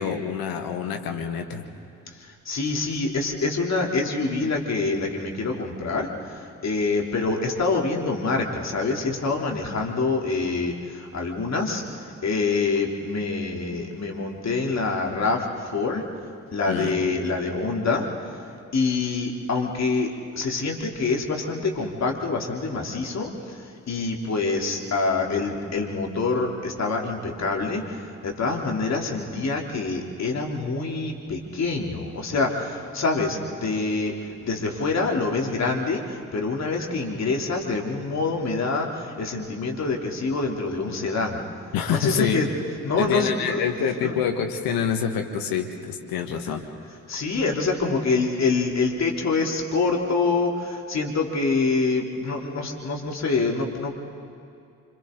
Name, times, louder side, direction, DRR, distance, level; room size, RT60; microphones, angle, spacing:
voice 1, 0.0-1.7 16.7-17.0 41.7-42.4 43.0-46.6, left 7 dB, 65° left, 5 dB, 1.7 m, -26 dB
voice 2, 2.1-16.0 16.5-18.1 18.7-41.4 41.9-42.5 42.8-43.6 44.0-44.2 47.1-53.9, left 3 dB, 45° left, 0 dB, 3.3 m, -26 dB
26.5 x 26.5 x 3.9 m, 2.4 s
figure-of-eight pair, 45°, 39 cm